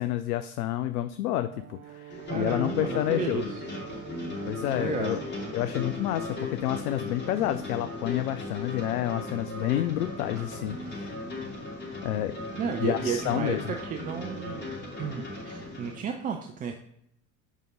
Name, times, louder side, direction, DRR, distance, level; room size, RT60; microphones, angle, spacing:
voice 1, 0.0-3.5 4.5-5.2 5.5-11.2 12.0-12.4 12.8-13.7, left 13 dB, 65° left, 11 dB, 0.5 m, -29 dB
Brass instrument, 1.5-5.7, right 14 dB, 65° right, 0.8 m, -45 dB
sound 1, 2.1-16.0, left 2 dB, 20° left, 2.7 m, -37 dB
voice 2, 2.3-3.5 4.8-5.2 12.6-14.7 15.0-16.8, right 7 dB, 20° right, 4 dB, 0.4 m, -33 dB
Wind instrument woodwind instrument, 7.2-11.3 12.2-15.6, equal, 45° right, 2.7 m, -52 dB
8.3 x 5.2 x 3.6 m, 0.76 s
figure-of-eight pair, 65°, 49 cm